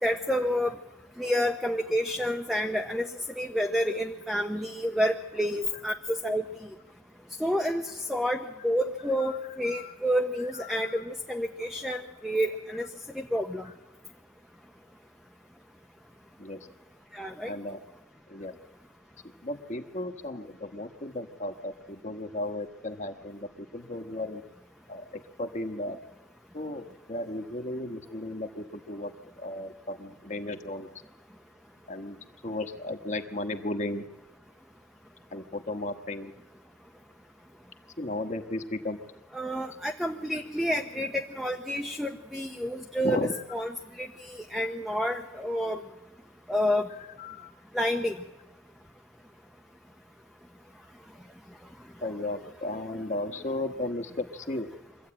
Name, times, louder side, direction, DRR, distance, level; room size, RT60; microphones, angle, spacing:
voice 1, 0.0-0.7 1.2-3.1 3.4-6.7 7.4-12.9 13.3-13.7 17.1-17.5 39.3-43.2 43.5-45.8 46.5-46.9 47.7-48.2, equal, ahead, 4 dB, 0.8 m, -29 dB
voice 2, 10.5-11.0 13.6-13.7 16.4-16.7 17.5-17.8 18.3-18.5 19.4-24.4 24.9-26.0 26.5-30.9 31.9-32.2 32.4-34.0 35.3-36.3 38.0-39.0 43.0-43.4 47.2-47.5 52.0-54.7, left 2 dB, 40° left, 6 dB, 1.3 m, -35 dB
24.0 x 14.0 x 8.8 m, 1.0 s
head